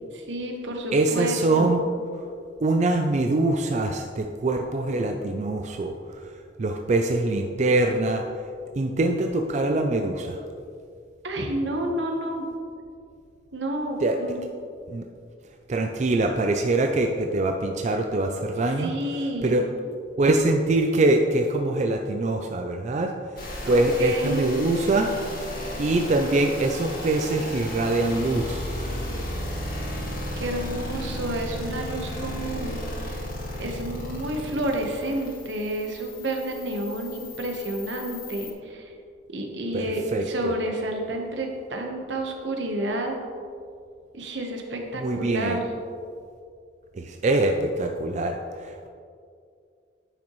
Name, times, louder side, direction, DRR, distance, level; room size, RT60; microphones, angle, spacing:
voice 1, 0.1-1.7 11.2-12.5 13.5-14.4 18.7-19.6 23.6-24.4 30.4-32.8 33.6-38.9 39.3-43.2 44.1-45.7, right 1 dB, 80° right, 2 dB, 1.1 m, -30 dB
voice 2, 0.9-1.8 2.6-5.9 6.6-8.2 8.8-10.4 14.0-14.2 14.9-15.0 15.7-18.9 19.4-19.6 20.2-23.1 23.7-25.1 25.8-28.6 39.7-39.9 40.1-40.5 45.0-45.6 46.9-48.9, right 2 dB, 40° right, 4 dB, 0.4 m, -23 dB
sound 1, 23.4-38.5, left 1 dB, 55° left, 2.0 m, -34 dB
10.5 x 6.0 x 3.1 m, 2.3 s
head